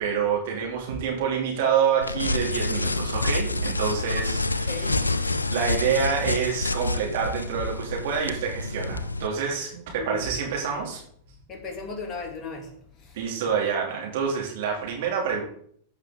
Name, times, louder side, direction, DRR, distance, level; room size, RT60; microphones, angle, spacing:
voice 1, 0.0-5.0 5.2-11.0 13.1-15.4, right 7 dB, 60° right, 2.9 m, -27 dB
sound 1, 0.9-11.1 11.4-11.5, right 5 dB, 80° right, 1.9 m, -41 dB
sound 2, 2.0-9.3, left 3 dB, 90° left, 0.5 m, -28 dB
voice 2, 4.7-5.0 10.0-10.2 11.5-12.7 13.0-13.2, left 4 dB, 30° left, 2.8 m, -36 dB
14.5 x 5.7 x 3.8 m
figure-of-eight pair, 95°, 0 cm